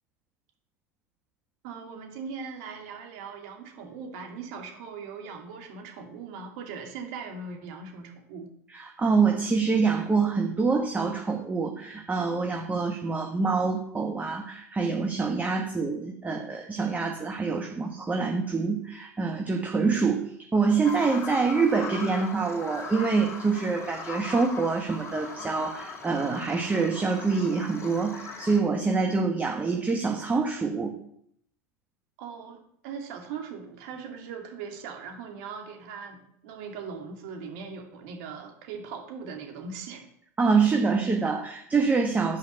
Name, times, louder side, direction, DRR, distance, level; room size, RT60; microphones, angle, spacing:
voice 1, 1.6-8.5 32.2-40.0, right 5 dB, 65° right, 3 dB, 2.4 m, -40 dB
voice 2, 8.7-30.9 40.4-42.4, right 4 dB, 15° right, 2 dB, 1.4 m, -26 dB
Bird vocalization bird call bird song, 20.8-28.6, left 4 dB, 35° left, 2.3 m, -39 dB
10.5 x 5.2 x 6.4 m, 0.68 s
hypercardioid pair, 95°, 9 cm